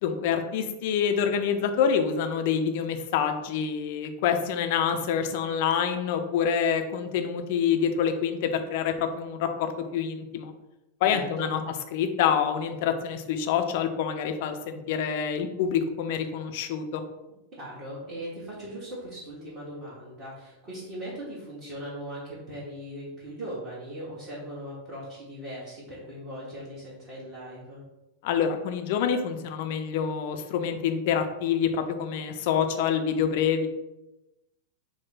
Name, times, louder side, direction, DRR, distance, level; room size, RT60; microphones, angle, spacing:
voice 1, 0.0-10.5 11.0-11.6 11.9-17.0 28.2-33.7, left 7 dB, 50° left, 7 dB, 0.4 m, -26 dB
voice 2, 11.0-11.5 17.6-27.8, right 1 dB, 35° right, -7 dB, 1.3 m, -39 dB
4.6 x 2.1 x 4.0 m, 0.99 s
figure-of-eight pair, 90°, 0 cm